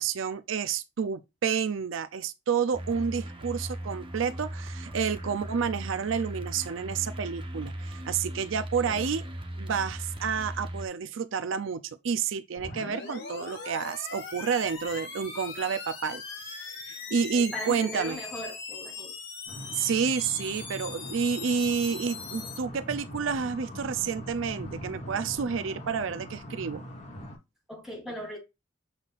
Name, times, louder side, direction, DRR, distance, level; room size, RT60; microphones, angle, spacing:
voice 1, 0.0-9.2 9.6-18.2 19.7-26.8, right 6 dB, 75° right, 0.5 m, -30 dB
sound 1, 2.7-10.9, right 1 dB, 25° right, 0.9 m, -38 dB
sound 2, 12.6-22.6, left 5 dB, 65° left, 4.6 m, -40 dB
voice 2, 17.3-19.1 27.7-28.4, left 1 dB, ahead, 3.2 m, -38 dB
sound 3, 19.5-27.4, equal, 35° left, 3.5 m, -42 dB
7.9 x 5.6 x 2.5 m
head